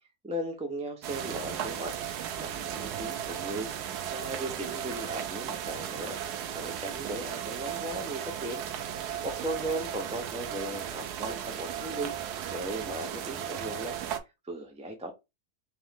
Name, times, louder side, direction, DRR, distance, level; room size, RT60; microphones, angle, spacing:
voice 1, 0.2-1.9 2.4-3.7 4.1-6.2 6.5-8.6 9.2-12.1 12.5-15.1, right 1 dB, 10° right, 0.4 m, -37 dB
sound 1, 1.0-14.2, right 9 dB, 90° right, 1.2 m, -36 dB
3.5 x 3.1 x 3.4 m
omnidirectional pair, 1.6 m